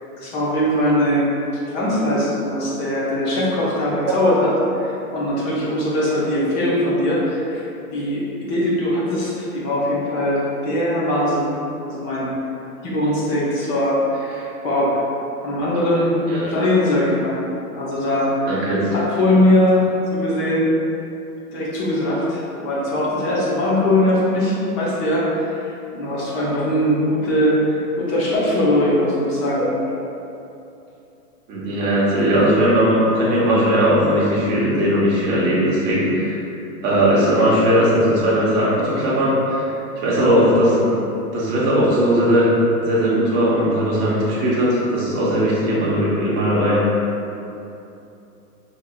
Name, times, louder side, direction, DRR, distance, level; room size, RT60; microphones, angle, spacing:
voice 1, 0.2-1.3 1.7-4.5 4.8-7.6 7.9-11.5 11.8-12.3 12.8-15.0 15.4-16.2 16.5-17.4 17.7-20.7 21.5-29.7, left 1 dB, 25° left, -7 dB, 0.7 m, -21 dB
voice 2, 18.5-18.8 31.5-36.4 36.8-39.7 40.0-40.9 41.3-42.5 42.8-46.8, equal, 20° right, -7 dB, 0.8 m, -18 dB
4.6 x 2.9 x 2.3 m, 2.8 s
hypercardioid pair, 135°, 47 cm